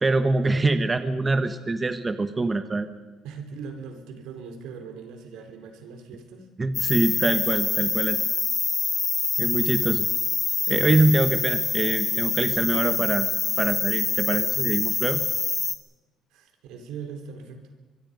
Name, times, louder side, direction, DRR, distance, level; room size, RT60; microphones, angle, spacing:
voice 1, 0.0-2.9 6.6-8.2 9.4-10.1 10.7-13.3 13.6-15.2, right 3 dB, 20° right, 9 dB, 1.1 m, -24 dB
voice 2, 0.6-0.9 3.2-6.5 16.3-17.6, right 5 dB, 90° right, 5 dB, 3.8 m, -40 dB
sound 1, 6.7-15.7, left 4 dB, 25° left, 1.5 m, -25 dB
24.5 x 22.5 x 5.3 m, 1.2 s
cardioid pair, 135°, 0 cm